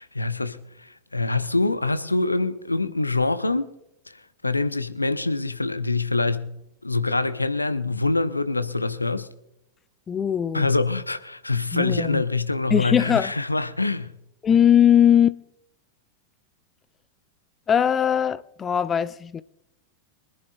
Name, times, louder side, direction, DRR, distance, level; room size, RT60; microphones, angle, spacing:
voice 1, 0.0-3.7 4.1-9.3 10.5-14.1, left 3 dB, 85° left, 0.8 m, -25 dB
voice 2, 10.1-10.7 11.7-12.2 12.7-13.3 14.4-15.4 17.7-19.4, left 9 dB, 20° left, 0.4 m, -20 dB
24.0 x 10.5 x 2.4 m
figure-of-eight pair, 90°, 0 cm